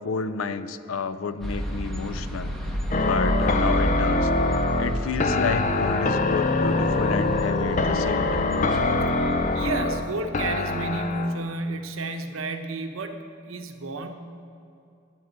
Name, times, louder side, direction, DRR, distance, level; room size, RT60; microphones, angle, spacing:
voice 1, 0.0-2.5 3.0-4.3 4.8-8.5, left 5 dB, 80° left, 12 dB, 0.5 m, -30 dB
sound 1, 1.4-9.8, equal, ahead, 1.3 m, -31 dB
sound 2, 2.9-11.4, left 2 dB, 40° left, 0.6 m, -24 dB
voice 2, 9.5-14.1, right 2 dB, 85° right, 6 dB, 0.9 m, -31 dB
9.5 x 7.8 x 9.1 m, 2.6 s
head